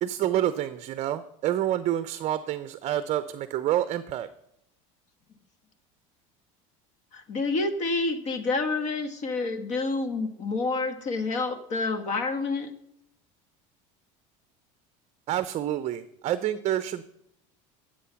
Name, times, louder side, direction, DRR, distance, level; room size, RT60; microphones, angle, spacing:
voice 1, 0.0-4.3 15.3-17.0, right 12 dB, 40° right, 13 dB, 0.6 m, -28 dB
voice 2, 7.1-12.7, left 3 dB, 45° left, 9 dB, 1.5 m, -28 dB
12.5 x 7.7 x 5.8 m, 0.77 s
supercardioid pair, 125°, 17 cm